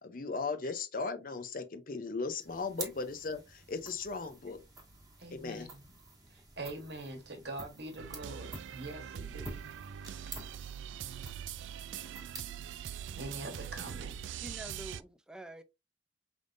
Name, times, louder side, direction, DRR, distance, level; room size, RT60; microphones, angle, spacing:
voice 1, 0.0-4.6 5.3-5.7, left 4 dB, 45° left, 0.6 m, -37 dB
sound 1, 2.4-14.1, right 2 dB, 20° right, 1.4 m, -50 dB
voice 2, 5.2-5.8 6.3-9.7 10.1-10.4 13.2-14.4, right 2 dB, 60° right, 1.3 m, -44 dB
sound 2, 8.0-15.0, right 9 dB, 80° right, 0.3 m, -43 dB
voice 3, 14.4-15.6, right 1 dB, 5° right, 0.4 m, -47 dB
5.1 x 3.5 x 2.6 m
head